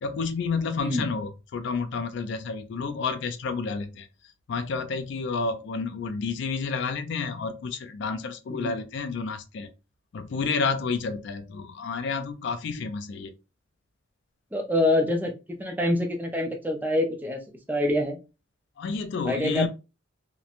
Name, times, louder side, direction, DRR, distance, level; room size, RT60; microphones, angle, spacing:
voice 1, 0.0-4.1 4.5-9.7 10.1-13.3 18.8-19.7, left 4 dB, 60° left, 0.3 m, -30 dB
voice 2, 14.5-17.4 17.7-18.2 19.2-19.7, left 1 dB, 10° right, 0.4 m, -26 dB
2.9 x 2.1 x 2.4 m
head